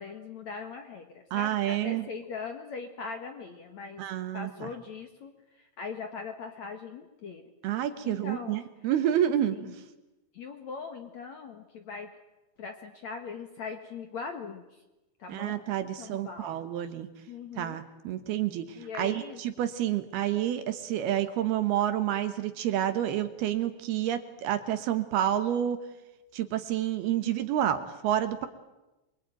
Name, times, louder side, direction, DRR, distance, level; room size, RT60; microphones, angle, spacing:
voice 1, 0.0-4.0 4.3-7.4 8.0-8.6 9.5-9.7 10.3-12.1 12.6-14.8 15.2-15.6 16.0-16.5 17.3-17.8 18.8-19.4 27.2-27.4 27.8-27.9, left 5 dB, 55° left, 6 dB, 2.1 m, -40 dB
voice 2, 1.3-2.1 4.0-4.7 7.6-9.8 15.3-17.1 17.6-25.8 26.3-28.5, right 11 dB, 70° right, 10 dB, 3.0 m, -29 dB
27.0 x 23.5 x 9.3 m, 1.0 s
omnidirectional pair, 5.2 m